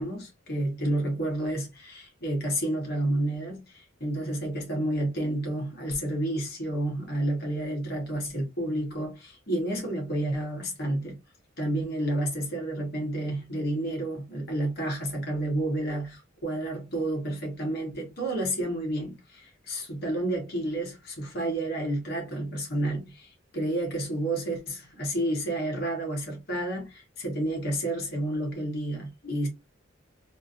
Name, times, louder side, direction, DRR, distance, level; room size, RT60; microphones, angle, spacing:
voice 1, 0.0-11.2 11.6-29.5, right 1 dB, 55° left, 1.5 m, -30 dB
3.6 x 2.7 x 2.5 m
head